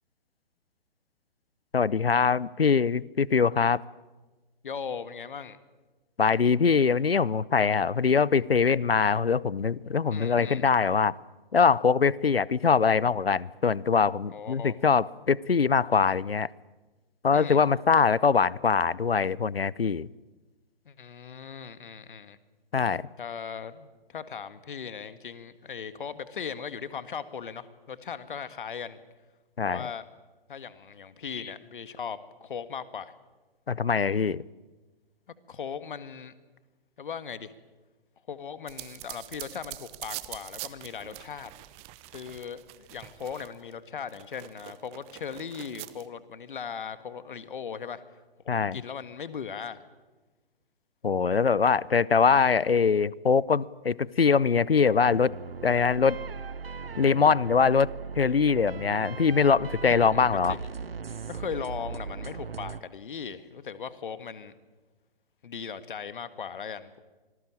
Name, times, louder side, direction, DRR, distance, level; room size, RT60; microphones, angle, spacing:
voice 1, 1.7-3.8 6.2-11.2 11.5-16.5 17.2-20.1 22.7-23.1 29.6-29.9 33.7-34.4 48.5-48.8 51.0-55.3 55.6-56.2 57.0-57.9 58.2-60.6, left 5 dB, 80° left, 23 dB, 0.8 m, -23 dB
voice 2, 4.6-5.6 10.1-10.6 14.3-14.8 17.3-17.6 20.9-22.4 23.2-29.0 29.6-30.0 30.5-33.1 35.5-36.3 37.0-37.5 38.3-41.5 42.1-48.0 48.5-49.8 59.8-60.6 61.3-64.5 65.4-67.0, left 6 dB, 60° left, 13 dB, 1.8 m, -38 dB
sound 1, 38.7-43.7 44.1-46.1, right 19 dB, 20° right, 0.9 m, -44 dB
sound 2, 55.0-62.8, right 5 dB, 80° right, 0.9 m, -38 dB
26.0 x 20.0 x 8.9 m, 1.2 s
figure-of-eight pair, 125°, 29 cm